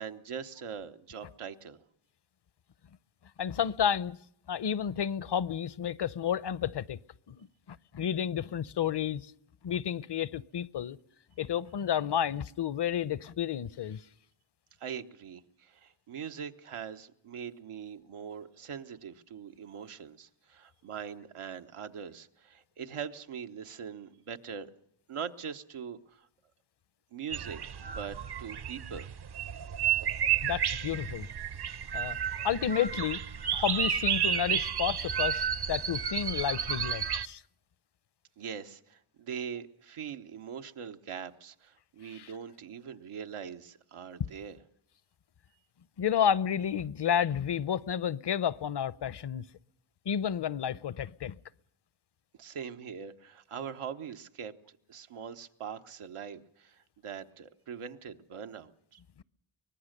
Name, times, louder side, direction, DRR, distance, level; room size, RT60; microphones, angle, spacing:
voice 1, 0.0-1.8 14.8-24.7 25.1-26.3 27.1-29.1 38.4-44.6 52.4-54.5 54.9-59.0, right 7 dB, 90° right, 1.2 m, -42 dB
voice 2, 3.4-4.2 4.5-7.0 7.3-9.3 9.6-11.0 11.4-14.0 30.4-31.3 31.9-32.2 32.4-33.2 33.5-37.4 42.1-42.3 46.0-49.4 50.1-51.3, left 9 dB, 55° left, 0.8 m, -31 dB
sound 1, 27.3-37.3, right 8 dB, 50° right, 0.8 m, -32 dB
24.5 x 19.5 x 6.6 m
cardioid pair, 50°, 49 cm